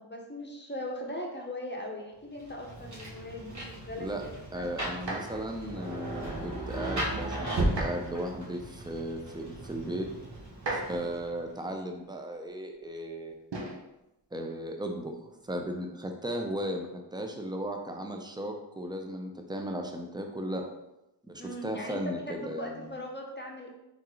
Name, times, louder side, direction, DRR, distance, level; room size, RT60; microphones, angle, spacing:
voice 1, 0.0-4.7 21.4-23.7, left 1 dB, 25° left, 0 dB, 0.8 m, -39 dB
Rain, 2.4-11.4, right 1 dB, 40° right, 1.2 m, -36 dB
voice 2, 4.5-10.1 10.7-13.4 14.3-15.1 15.4-20.7 21.2-23.0, equal, 10° right, 3 dB, 0.6 m, -36 dB
sound 1, 5.0-5.5 7.6-8.2 9.2-9.3 10.5-11.2 13.5-13.9 15.1-15.5, right 2 dB, 70° right, 1.0 m, -36 dB
3.8 x 3.6 x 3.1 m, 0.90 s
cardioid pair, 45°, 44 cm